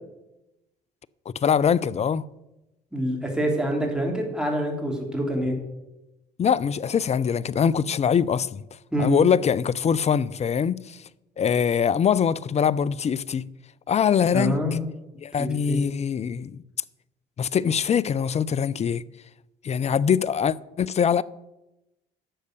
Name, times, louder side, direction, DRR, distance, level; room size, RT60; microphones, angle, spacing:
voice 1, 1.3-2.2 6.4-8.6 9.0-11.0 11.4-13.5 13.9-14.8 15.2-16.6 17.4-19.0 19.6-21.2, left 7 dB, 35° left, 0.5 m, -23 dB
voice 2, 2.9-5.6 8.9-9.2 14.3-14.8 15.4-15.8, equal, 5° right, 3.3 m, -26 dB
10.0 x 6.6 x 6.7 m
hypercardioid pair, 55°, 20 cm